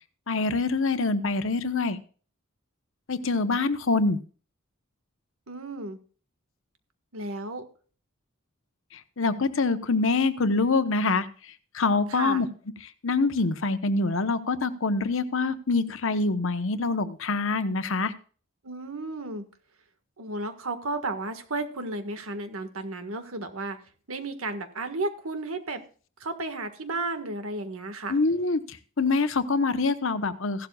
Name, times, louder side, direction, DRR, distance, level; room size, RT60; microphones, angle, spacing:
voice 1, 0.3-2.0 3.1-4.2 8.9-11.3 11.7-12.5 13.0-18.1 28.1-30.7, left 3 dB, 65° left, 11 dB, 1.0 m, -25 dB
voice 2, 5.5-6.0 7.1-7.6 12.1-12.4 18.6-19.4 20.2-23.8 24.1-25.8 26.2-28.2, right 2 dB, 80° right, 8 dB, 1.6 m, -33 dB
16.0 x 12.0 x 2.4 m, 0.40 s
head